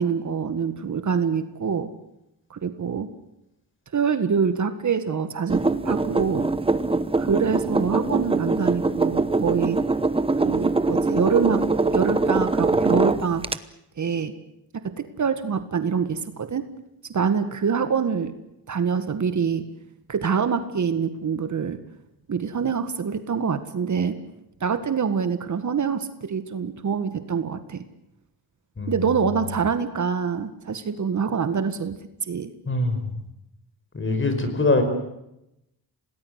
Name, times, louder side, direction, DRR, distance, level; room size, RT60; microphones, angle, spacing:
voice 1, 0.0-1.9 2.5-3.1 3.9-5.6 5.8-6.5 7.1-9.8 10.4-11.6 11.9-13.4 14.0-14.3 14.7-16.7 17.1-18.3 18.7-19.7 20.1-21.8 22.3-24.2 24.6-27.8 28.9-32.5, right 6 dB, 45° right, 10 dB, 1.8 m, -25 dB
sound 1, 5.5-13.6, right 3 dB, 15° right, 1.0 m, -23 dB
voice 2, 32.7-33.1 33.9-34.8, left 2 dB, 30° left, 8 dB, 5.3 m, -22 dB
27.0 x 18.5 x 8.2 m, 0.85 s
cardioid pair, 105°, 40 cm